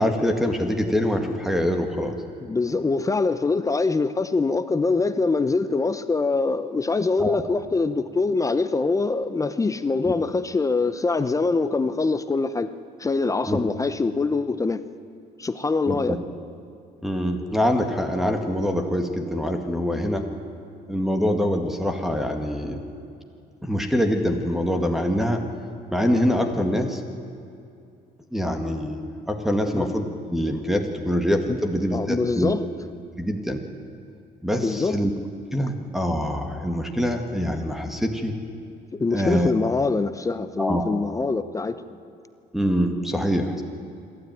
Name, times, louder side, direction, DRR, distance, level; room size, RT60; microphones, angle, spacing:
voice 1, 0.0-2.2 7.2-7.4 10.1-10.2 13.5-13.6 15.9-16.2 17.0-20.3 20.9-22.8 23.6-25.4 25.9-27.0 28.3-29.0 29.3-32.5 33.2-33.6 34.4-35.1 35.5-38.3 39.1-39.5 40.6-40.8 42.5-43.6, equal, ahead, 5 dB, 2.0 m, -24 dB
voice 2, 2.4-12.7 13.0-14.8 15.4-16.2 29.8-29.9 31.5-31.6 31.9-32.6 34.6-35.0 38.9-41.8, left 3 dB, 20° left, 11 dB, 0.8 m, -24 dB
26.5 x 12.5 x 9.3 m, 2.5 s
cardioid pair, 110°, 17 cm